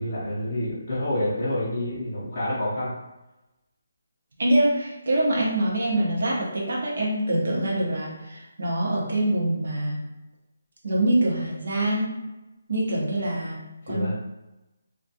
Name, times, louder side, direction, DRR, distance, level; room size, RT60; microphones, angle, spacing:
voice 1, 0.0-2.9 13.8-14.1, left 1 dB, 25° left, -10 dB, 0.6 m, -28 dB
voice 2, 4.4-10.0 10.8-12.2 12.7-14.1, right 1 dB, 50° right, -3 dB, 0.7 m, -25 dB
2.2 x 2.2 x 2.6 m, 1.0 s
hypercardioid pair, 180°, 0 cm